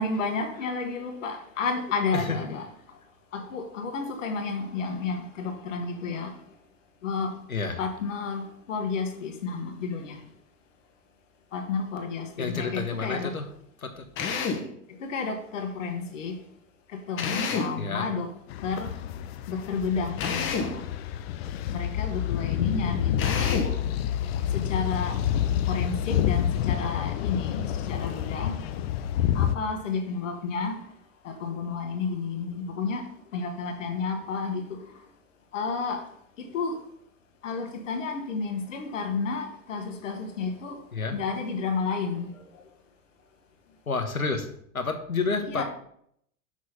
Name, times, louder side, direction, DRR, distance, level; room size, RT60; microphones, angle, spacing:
voice 1, 0.0-2.6 3.3-6.3 7.0-7.3 7.8-10.2 11.5-13.4 15.0-16.4 17.1-18.3 18.6-18.9 19.5-20.8 21.7-23.7 24.5-25.2 25.7-28.6 29.3-30.7 31.2-33.0 33.3-34.8 35.5-36.0 36.4-36.8 37.4-40.8 41.1-42.3 45.5-45.6, left 4 dB, 65° left, 5 dB, 1.6 m, -31 dB
voice 2, 7.5-7.8 12.4-13.4 13.8-14.1 17.8-18.1 25.1-25.6 40.9-41.2 43.9-44.5 44.7-45.6, left 4 dB, 85° left, 6 dB, 1.3 m, -30 dB
Drill, 14.2-14.7 17.2-17.8 20.2-20.8 23.2-23.8, left 5 dB, 30° left, 1.4 m, -29 dB
sound 1, 18.5-29.6, left 11 dB, 45° left, 0.7 m, -28 dB
6.6 x 6.1 x 5.6 m, 0.69 s
figure-of-eight pair, 90°, 41 cm